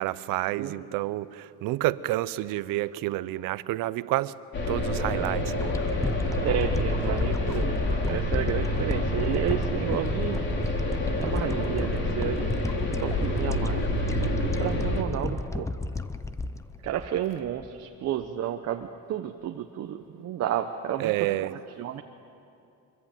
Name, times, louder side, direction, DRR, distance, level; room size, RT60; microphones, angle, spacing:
voice 1, 0.0-4.3 4.7-5.7 21.0-21.5, right 16 dB, 75° right, 0.8 m, -29 dB
voice 2, 0.6-0.9 6.4-10.8 11.2-12.5 12.8-13.8 14.2-14.3 14.6-15.7 16.8-22.0, right 10 dB, 50° right, 1.1 m, -32 dB
sound 1, 4.5-15.0, left 1 dB, 35° left, 3.2 m, -28 dB
sound 2, 5.5-17.8 18.2-18.3, left 3 dB, 10° left, 0.6 m, -34 dB
25.0 x 23.0 x 9.2 m
cardioid pair, 155°, 33 cm